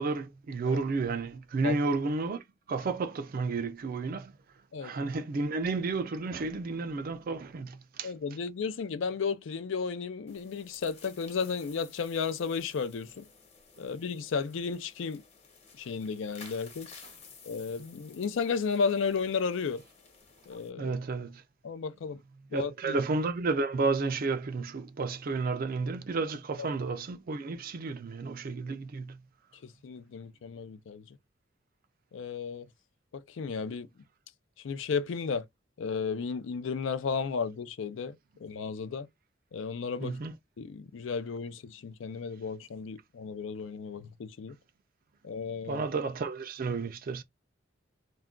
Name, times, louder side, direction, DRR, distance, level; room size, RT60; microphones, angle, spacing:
voice 1, 0.0-2.4 2.7-4.3 4.8-8.1 20.8-21.4 22.5-29.2 40.0-40.3 45.7-47.2, right 3 dB, 45° right, 0.4 m, -32 dB
voice 2, 8.0-13.2 13.8-15.2 15.8-16.9 17.4-19.8 20.5-21.0 21.6-22.2 22.5-23.0 26.6-26.7 29.6-31.0 32.1-32.7 33.1-33.9 34.6-35.4 35.8-38.2 38.4-39.1 39.5-40.2 40.6-44.6 45.2-45.8, left 5 dB, 70° left, 0.4 m, -33 dB
sound 1, 10.3-20.7, left 5 dB, 35° left, 1.0 m, -54 dB
2.3 x 2.2 x 3.6 m
head